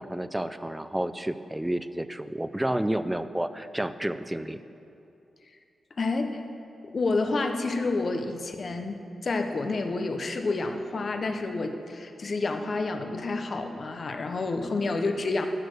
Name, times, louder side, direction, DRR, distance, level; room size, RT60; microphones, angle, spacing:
voice 1, 0.0-4.6, right 1 dB, 5° right, 12 dB, 0.3 m, -30 dB
voice 2, 6.0-6.4 6.8-9.0 9.2-15.5, left 3 dB, 40° left, 6 dB, 0.7 m, -29 dB
13.0 x 6.5 x 6.3 m, 2.7 s
wide cardioid pair, 165°, 0 cm